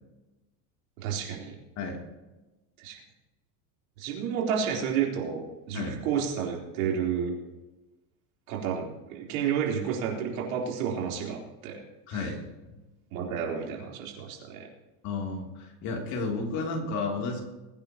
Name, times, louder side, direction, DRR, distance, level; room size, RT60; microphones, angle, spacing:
voice 1, 1.0-1.5 2.8-3.0 4.0-7.4 8.5-11.8 12.1-12.3 13.1-14.7, right 7 dB, 75° right, -1 dB, 3.9 m, -31 dB
voice 2, 12.1-12.4 15.0-17.4, left 3 dB, 40° left, 1 dB, 3.1 m, -32 dB
22.0 x 9.7 x 3.0 m, 1.1 s
supercardioid pair, 160°, 42 cm